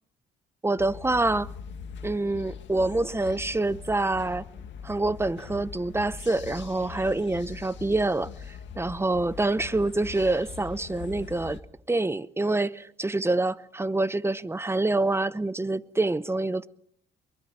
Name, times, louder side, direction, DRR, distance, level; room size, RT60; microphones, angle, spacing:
voice 1, 0.6-1.5 2.0-4.5 4.8-11.6 11.9-16.7, right 2 dB, 10° right, 0.7 m, -26 dB
sound 1, 0.8-11.6, left 7 dB, 70° left, 1.9 m, -42 dB
23.0 x 21.5 x 5.8 m
cardioid pair, 90°, 20 cm